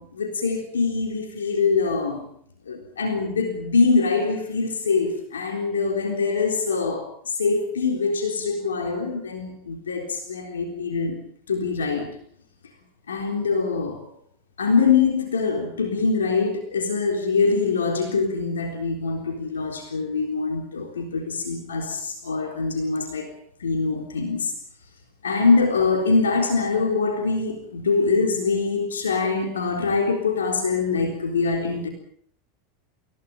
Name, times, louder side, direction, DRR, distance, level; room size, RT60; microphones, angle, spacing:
voice 1, 0.0-2.2 2.7-7.1 7.4-11.2 11.5-12.1 13.1-14.0 14.6-23.3 23.6-24.5 25.2-31.9, left 4 dB, 80° left, 4 dB, 3.8 m, -23 dB
28.0 x 16.5 x 7.1 m, 0.62 s
hypercardioid pair, 85°, 0 cm